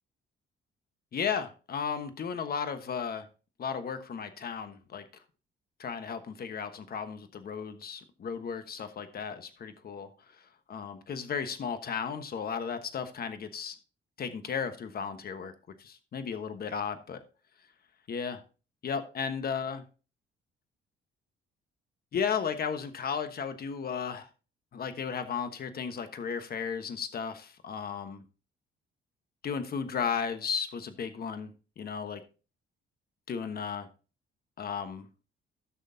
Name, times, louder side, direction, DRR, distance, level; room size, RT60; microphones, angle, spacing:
voice 1, 1.1-3.3 3.6-5.0 5.8-10.1 10.7-13.8 14.2-15.5 15.8-17.2 18.1-18.4 18.8-19.8 22.1-24.3 24.7-28.2 29.4-32.2 33.3-33.9 34.6-35.1, left 6 dB, 45° left, 9 dB, 1.2 m, -34 dB
15.0 x 6.3 x 2.7 m, 0.34 s
cardioid pair, 115°, 21 cm